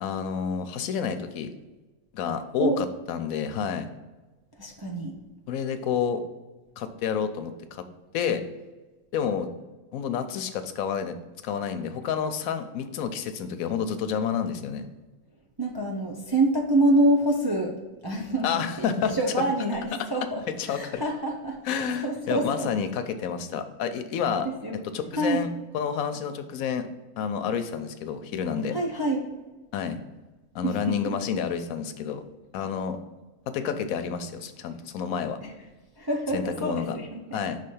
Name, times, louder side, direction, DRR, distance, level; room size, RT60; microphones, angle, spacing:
voice 1, 0.0-1.5 2.1-3.9 5.5-6.2 6.8-7.8 8.1-8.4 9.1-9.5 9.9-11.2 11.4-14.9 18.4-19.1 20.6-21.0 21.6-25.5 25.7-26.9 27.2-28.8 29.7-30.0 30.5-32.2 32.5-33.0 33.5-35.4 36.3-37.0 37.3-37.6, left 7 dB, 90° left, 9 dB, 1.0 m, -29 dB
voice 2, 4.6-5.1 15.6-17.7 18.0-22.7 24.4-24.8 25.2-25.4 28.7-29.3 30.6-31.2 35.4-35.5 36.0-37.4, right 1 dB, 35° right, -1 dB, 0.3 m, -26 dB
5.5 x 3.3 x 5.4 m, 1.2 s
omnidirectional pair, 1.4 m